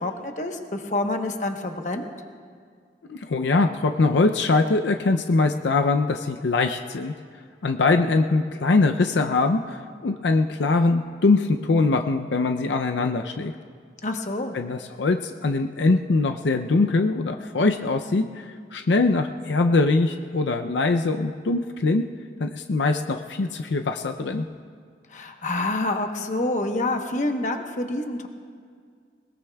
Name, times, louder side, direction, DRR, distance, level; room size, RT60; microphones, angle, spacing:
voice 1, 0.0-2.1 14.0-14.5 25.1-28.3, left 2 dB, 45° left, 4 dB, 1.0 m, -27 dB
voice 2, 3.1-7.1 7.6-13.5 14.5-22.1 22.4-24.5, left 3 dB, 80° left, 6 dB, 0.5 m, -22 dB
21.0 x 20.5 x 2.3 m, 2.1 s
head